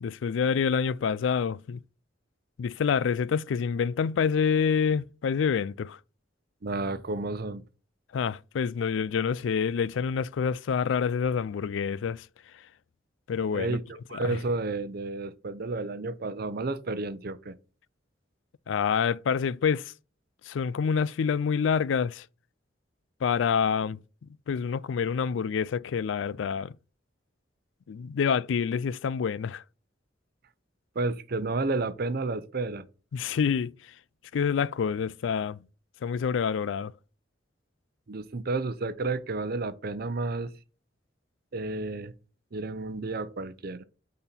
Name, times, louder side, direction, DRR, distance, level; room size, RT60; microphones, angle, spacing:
voice 1, 0.0-1.8 2.6-6.0 8.1-12.3 12.5-12.6 13.3-13.8 14.1-14.4 18.7-19.9 20.4-22.3 23.2-26.7 27.9-29.6 33.1-33.9 34.3-35.6 36.0-36.9, left 6 dB, 85° left, 0.4 m, -27 dB
voice 2, 6.6-7.6 13.5-17.5 31.0-32.8 38.1-40.5 41.5-42.1 42.5-43.8, right 3 dB, 55° right, 0.7 m, -31 dB
8.8 x 4.3 x 4.3 m
head